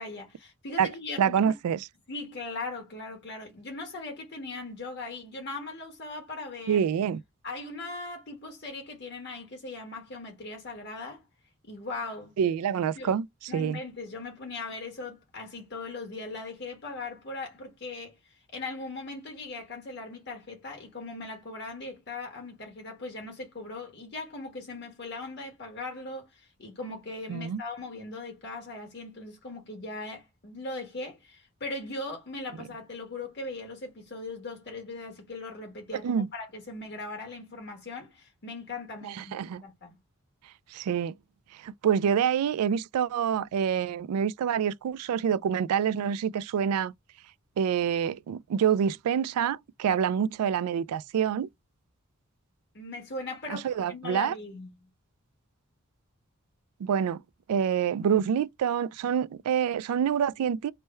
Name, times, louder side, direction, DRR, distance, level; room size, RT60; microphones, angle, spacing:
voice 1, 0.0-1.5 2.1-6.9 7.4-11.2 11.6-12.3 13.0-13.1 13.5-18.1 18.5-39.4 39.6-40.0 52.7-54.8, left 3 dB, 50° left, 1.5 m, -39 dB
voice 2, 1.2-1.8 6.7-7.2 12.4-13.3 13.5-13.8 27.3-27.6 32.6-32.7 36.0-36.3 39.0-39.6 40.7-41.1 41.6-46.9 47.6-51.5 53.5-54.3 56.8-57.2 57.5-60.7, right 8 dB, 85° right, 0.3 m, -27 dB
3.3 x 2.2 x 4.3 m
head